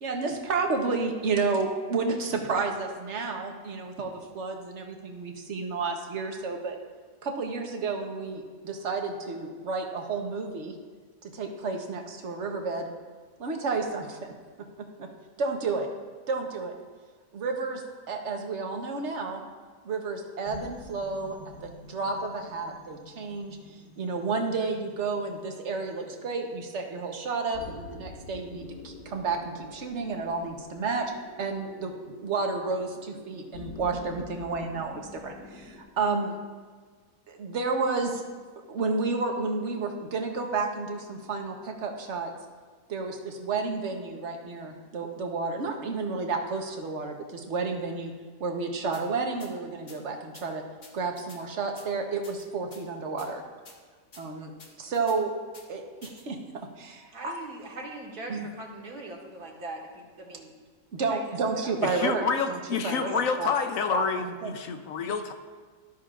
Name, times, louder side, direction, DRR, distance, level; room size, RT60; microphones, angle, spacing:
voice 1, 0.0-6.8 7.2-10.7 11.2-12.9 13.4-14.3 15.0-15.1 15.4-15.9 16.3-16.7 17.3-17.8 18.1-19.4 19.8-31.1 31.4-31.9 32.2-36.4 37.3-38.2 38.7-42.3 42.9-48.1 48.4-50.6 50.9-53.4 54.2-54.5 54.8-55.3 55.7-56.4 56.8-57.4 58.3-58.5 60.9-62.6 62.8-63.5 63.9-64.5, right 4 dB, 50° right, 3 dB, 1.3 m, -31 dB
sound 1, 20.4-35.8, left 3 dB, 90° left, 2.0 m, -48 dB
sound 2, 48.9-49.0 49.4-49.5 49.9-50.0 50.3-50.5 50.8-51.4 51.8-51.9 52.2-52.8 53.2-53.3 53.7-53.8 54.1-54.2 54.6-55.2 55.5-55.7 56.0-56.2, left 3 dB, 50° left, 1.7 m, -50 dB
voice 2, 57.1-60.5 61.1-61.8 63.6-63.7, right 2 dB, 90° right, -1 dB, 2.2 m, -41 dB
voice 3, 61.8-65.3, left 5 dB, 65° left, 7 dB, 1.1 m, -28 dB
13.0 x 12.5 x 2.5 m, 1.5 s
omnidirectional pair, 1.6 m